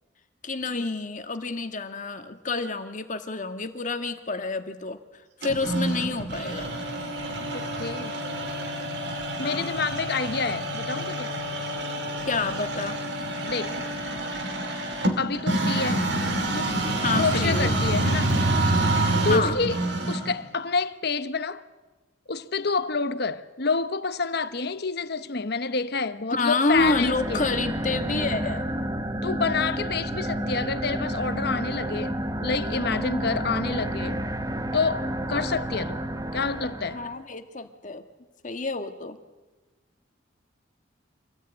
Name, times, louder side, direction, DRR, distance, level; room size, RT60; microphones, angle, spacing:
voice 1, 0.4-5.0 5.4-6.7 9.4-9.9 12.3-13.0 17.0-17.7 19.3-19.6 26.3-28.6 35.3-35.5 36.9-38.0 38.4-39.2, left 3 dB, 40° left, 1.7 m, -28 dB
sound 1, 5.4-20.4, right 1 dB, 60° right, 2.9 m, -27 dB
voice 2, 7.5-8.2 9.4-11.3 13.4-13.8 15.2-16.0 16.5-16.8 17.1-18.4 19.2-19.8 20.1-21.6 22.3-27.5 29.2-34.3 34.7-36.0 36.3-37.0, left 4 dB, 60° left, 1.1 m, -28 dB
sound 2, 26.7-37.2, right 1 dB, 20° right, 1.1 m, -30 dB
26.5 x 17.5 x 9.1 m
head